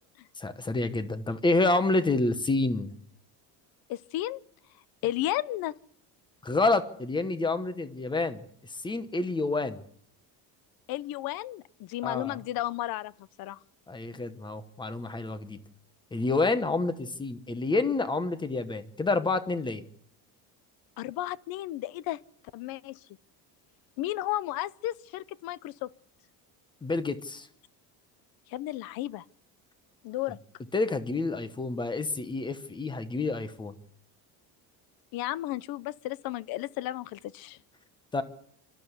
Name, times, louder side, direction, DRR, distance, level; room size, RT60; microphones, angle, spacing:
voice 1, 0.4-2.9 6.4-8.4 8.7-9.8 12.0-12.4 13.9-15.6 16.1-19.8 26.8-27.5 30.7-33.7 38.1-38.2, left 3 dB, 10° left, 1.0 m, -28 dB
voice 2, 3.9-4.4 5.0-5.7 10.9-13.1 13.4-13.6 21.0-22.2 22.5-23.0 24.0-25.9 28.5-29.2 30.0-30.4 35.1-37.6, left 15 dB, 55° left, 0.7 m, -33 dB
25.0 x 13.0 x 8.1 m
cardioid pair, 170°, 42 cm